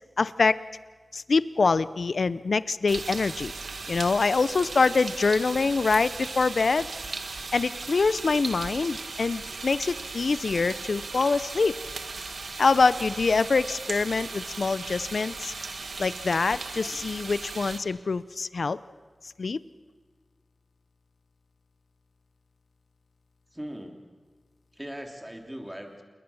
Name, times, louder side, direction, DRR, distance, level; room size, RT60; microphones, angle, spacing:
voice 1, 0.2-0.6 1.1-3.5 3.9-6.9 7.5-11.8 12.6-15.5 16.0-18.8 19.4-19.6, left 4 dB, 75° left, 17 dB, 0.6 m, -25 dB
sound 1, 2.9-17.8, right 4 dB, 85° right, 1.8 m, -37 dB
voice 2, 23.5-24.0 24.7-26.0, equal, 10° right, 4 dB, 3.1 m, -39 dB
28.0 x 21.0 x 7.1 m, 1.4 s
wide cardioid pair, 90°, 0 cm